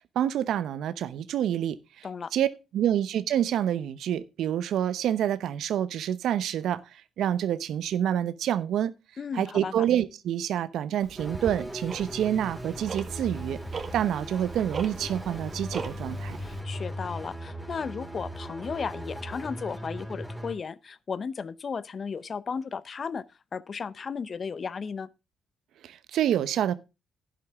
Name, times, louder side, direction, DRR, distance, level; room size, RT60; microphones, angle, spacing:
voice 1, 0.1-2.1 2.3-2.5 2.7-8.9 9.3-13.6 13.9-16.4 25.8-26.7, right 10 dB, 75° right, 0.9 m, -27 dB
voice 2, 9.2-9.8 16.4-23.2 23.5-25.1, left 5 dB, 45° left, 0.7 m, -35 dB
Tick-tock, 11.0-16.6, right 5 dB, 45° right, 1.6 m, -40 dB
sound 1, 11.2-20.5, equal, ahead, 4.2 m, -38 dB
11.0 x 10.5 x 3.6 m
supercardioid pair, 70°, 0 cm